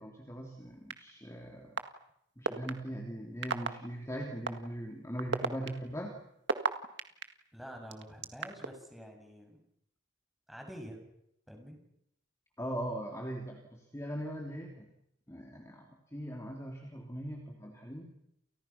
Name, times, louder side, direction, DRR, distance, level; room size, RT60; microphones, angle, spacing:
voice 1, 0.0-1.8 2.4-6.2 12.6-14.9 15.3-18.1, equal, 15° left, 1 dB, 3.2 m, -40 dB
sound 1, 0.9-1.0 1.8-1.9 2.4-2.7 3.4-3.7 4.5-4.6 5.2-7.2 7.9-8.7, right 4 dB, 60° right, 1.9 m, -31 dB
voice 2, 7.5-9.6 10.5-11.0 11.5-11.8, equal, ahead, 2 dB, 6.7 m, -47 dB
30.0 x 29.5 x 5.9 m, 0.77 s
head